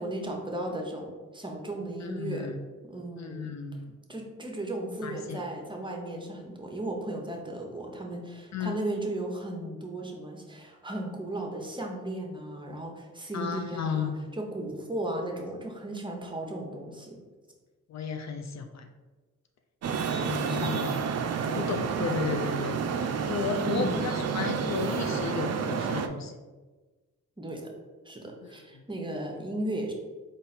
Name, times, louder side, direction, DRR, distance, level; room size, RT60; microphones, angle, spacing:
voice 1, 0.0-2.5 2.8-3.5 4.1-17.2 20.5-20.8 23.6-24.1 27.4-27.7 28.0-29.9, right 1 dB, 15° right, 1 dB, 0.8 m, -35 dB
voice 2, 2.0-2.6 3.2-4.0 5.0-5.4 8.5-8.8 13.3-14.2 17.9-18.9 20.0-21.0 21.5-22.8 23.2-26.3 28.4-28.8, left 5 dB, 55° left, 6 dB, 0.5 m, -34 dB
Traffic noise roadway noise, 19.8-26.1, right 6 dB, 50° right, 0.4 m, -30 dB
3.9 x 2.5 x 4.1 m, 1.3 s
cardioid pair, 65°, 32 cm